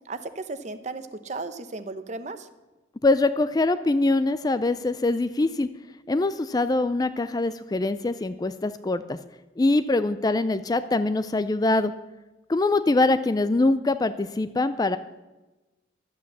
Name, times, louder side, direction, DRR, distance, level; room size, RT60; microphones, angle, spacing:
voice 1, 0.1-2.5, right 3 dB, 40° right, 11 dB, 0.8 m, -35 dB
voice 2, 3.0-5.7 6.1-9.2 9.6-11.9 12.5-15.0, left 2 dB, 20° left, 13 dB, 0.3 m, -23 dB
12.0 x 8.5 x 7.3 m, 1.1 s
head